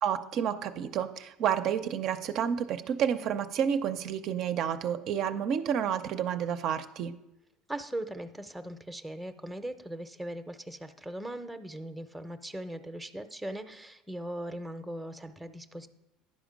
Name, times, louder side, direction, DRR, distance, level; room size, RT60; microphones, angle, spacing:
voice 1, 0.0-7.1, right 8 dB, 55° right, 9 dB, 0.5 m, -30 dB
voice 2, 7.7-15.9, right 1 dB, 5° right, 9 dB, 0.6 m, -39 dB
10.5 x 5.1 x 5.1 m, 0.89 s
supercardioid pair, 105°, 0 cm